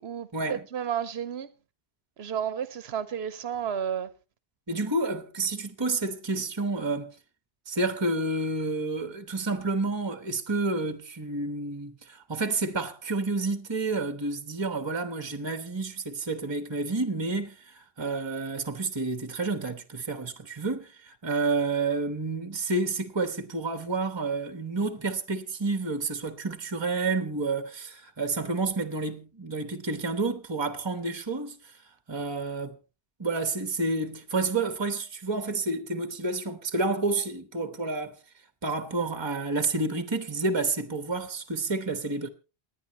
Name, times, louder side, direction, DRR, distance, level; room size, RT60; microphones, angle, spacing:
voice 1, 0.0-1.5 2.2-4.1, right 8 dB, 80° right, 1.1 m, -32 dB
voice 2, 4.7-7.1 7.7-31.7 32.1-32.8 33.2-38.2 38.6-42.3, right 3 dB, 25° right, 1.1 m, -30 dB
28.0 x 9.6 x 3.0 m
omnidirectional pair, 1.1 m